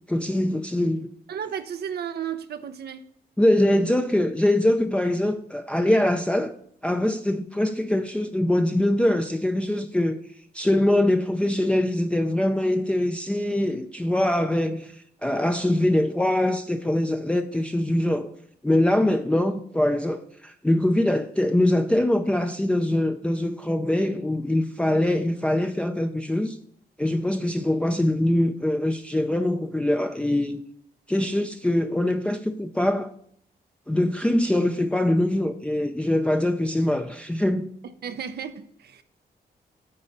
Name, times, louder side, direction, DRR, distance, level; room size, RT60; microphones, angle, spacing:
voice 1, 0.1-1.1 3.4-6.5 6.8-10.2 10.5-14.9 15.2-18.3 18.6-26.6 27.0-30.6 31.1-33.1 33.9-37.7, left 1 dB, 5° left, 0.5 m, -23 dB
voice 2, 1.3-3.0 38.0-39.0, right 8 dB, 70° right, 0.7 m, -33 dB
9.5 x 3.9 x 6.6 m
wide cardioid pair, 130°, 17 cm